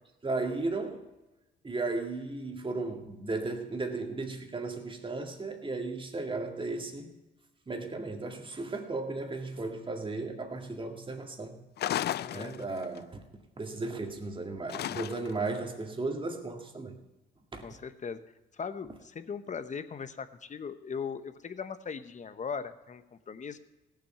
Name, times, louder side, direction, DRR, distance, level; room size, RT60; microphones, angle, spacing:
voice 1, 0.2-1.0 1.6-7.1 7.7-11.6 12.3-13.2 13.6-17.0 17.5-17.6, right 3 dB, 25° right, 2.1 m, -35 dB
sound 1, 11.8-13.0 14.7-15.5, left 12 dB, 55° left, 0.4 m, -34 dB
voice 2, 12.1-12.6 17.6-18.2 18.6-23.0 23.3-23.6, left 6 dB, 40° left, 1.0 m, -39 dB
17.0 x 7.7 x 5.7 m
cardioid pair, 90°, 20 cm